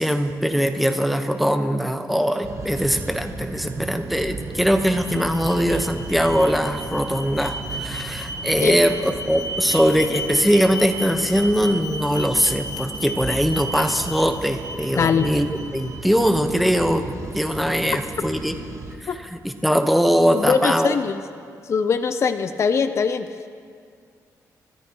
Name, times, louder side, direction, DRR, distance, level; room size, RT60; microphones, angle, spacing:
voice 1, 0.0-15.5 15.7-17.1 17.3-18.6 19.0-21.0, equal, ahead, 6 dB, 1.0 m, -21 dB
sound 1, 2.4-19.0, right 3 dB, 50° right, 1.3 m, -36 dB
Alarm, 4.4-16.4, equal, 70° left, 2.8 m, -35 dB
voice 2, 14.9-15.3 19.1-19.2 20.3-21.2 21.7-23.3, left 6 dB, 45° left, 10 dB, 0.5 m, -21 dB
26.5 x 13.5 x 3.0 m, 2.2 s
cardioid pair, 105°, 7 cm